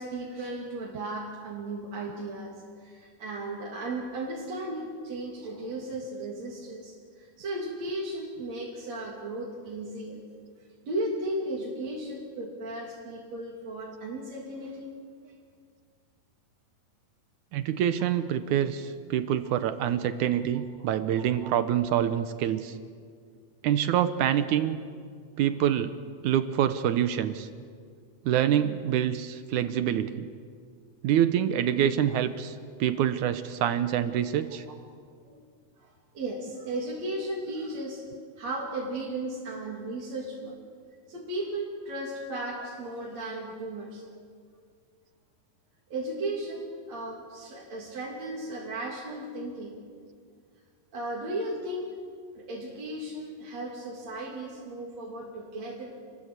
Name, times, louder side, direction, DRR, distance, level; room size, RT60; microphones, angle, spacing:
voice 1, 0.0-10.2 10.8-15.0 15.2-15.3 21.1-21.5 35.2-35.4 35.8-38.0 38.4-40.6 41.1-44.0 45.9-49.8 50.9-51.9 52.3-56.0, right 1 dB, 60° right, -3 dB, 4.2 m, -35 dB
voice 2, 17.5-22.8 23.6-24.8 25.4-26.0 26.2-27.5 28.3-30.3 31.0-34.7, right 10 dB, 80° right, 10 dB, 2.3 m, -26 dB
29.0 x 22.0 x 8.3 m, 2.1 s
omnidirectional pair, 3.5 m